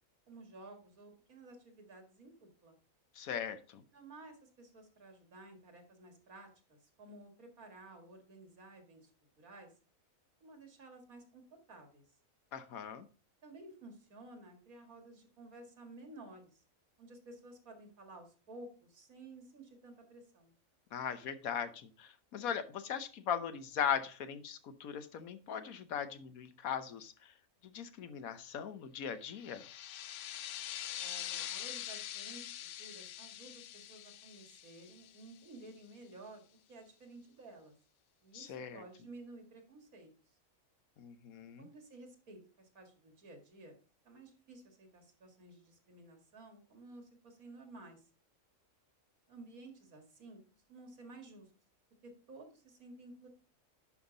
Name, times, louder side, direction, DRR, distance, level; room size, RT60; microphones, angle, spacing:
voice 1, 0.3-2.8 3.9-9.1 9.4-9.7 10.4-12.0 13.4-16.6 17.0-20.5 31.0-37.7 38.2-40.1 41.6-43.7 44.0-48.1 49.3-50.4 50.7-51.5 52.0-53.3, right 2 dB, 90° right, 4 dB, 2.5 m, -54 dB
voice 2, 3.2-3.8 12.5-13.1 20.9-27.1 27.6-29.6 38.3-38.8 41.0-41.7, left 8 dB, 85° left, 11 dB, 1.3 m, -39 dB
sound 1, 29.3-35.7, left 11 dB, 70° left, 0.9 m, -44 dB
11.0 x 5.6 x 3.9 m, 0.37 s
omnidirectional pair, 1.5 m